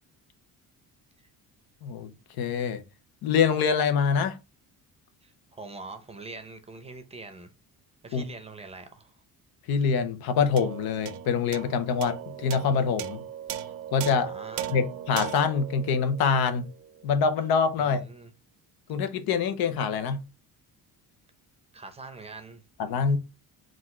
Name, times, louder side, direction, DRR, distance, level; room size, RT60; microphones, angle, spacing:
voice 1, 1.8-2.1 2.4-2.8 3.2-4.4 8.1-8.2 9.7-13.2 13.9-14.3 14.7-16.7 17.0-18.0 18.9-20.2 22.8-23.2, left 6 dB, 85° left, 0.8 m, -25 dB
voice 2, 5.2-7.5 8.0-9.2 14.1-14.8 17.8-18.3 21.7-22.6, right 3 dB, 15° right, 0.6 m, -44 dB
sound 1, 10.6-17.2, right 11 dB, 70° right, 0.6 m, -38 dB
4.1 x 2.5 x 4.2 m
cardioid pair, 145°, 36 cm